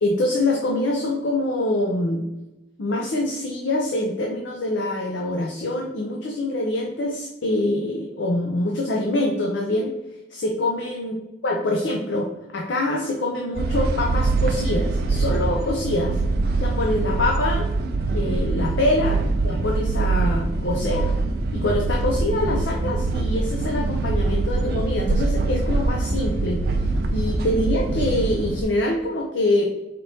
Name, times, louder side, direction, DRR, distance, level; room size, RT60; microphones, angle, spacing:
voice 1, 0.0-2.2 2.8-9.9 10.3-11.1 11.4-12.3 12.5-16.2 16.6-17.7 18.1-19.1 19.4-21.1 21.5-26.6 27.1-29.9, left 1 dB, 75° left, 0 dB, 0.5 m, -24 dB
sound 1, 13.6-28.6, right 3 dB, 55° right, 0.4 m, -23 dB
4.2 x 3.3 x 2.7 m, 0.97 s
head